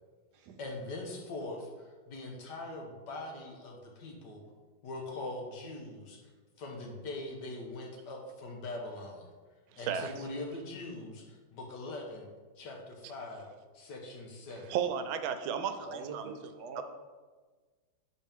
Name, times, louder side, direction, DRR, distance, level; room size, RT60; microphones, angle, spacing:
voice 1, 0.6-4.4 4.8-6.3 6.6-9.3 9.8-12.3 12.6-13.5 13.7-14.8, left 2 dB, 65° left, 1 dB, 1.7 m, -42 dB
voice 2, 9.7-10.1 14.7-16.2 16.8-16.9, right 8 dB, 85° right, 9 dB, 1.4 m, -33 dB
voice 3, 15.8-16.8, right 4 dB, 65° right, 4 dB, 1.1 m, -44 dB
11.0 x 4.5 x 3.6 m, 1.4 s
omnidirectional pair, 2.2 m